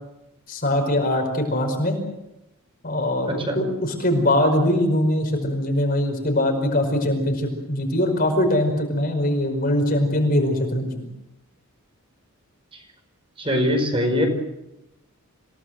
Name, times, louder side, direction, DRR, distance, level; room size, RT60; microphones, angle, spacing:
voice 1, 0.5-2.0 2.8-11.1, left 1 dB, 40° left, 4 dB, 5.2 m, -22 dB
voice 2, 3.3-3.6 13.4-14.3, left 1 dB, 25° right, 4 dB, 5.0 m, -22 dB
27.5 x 18.5 x 7.8 m, 0.91 s
head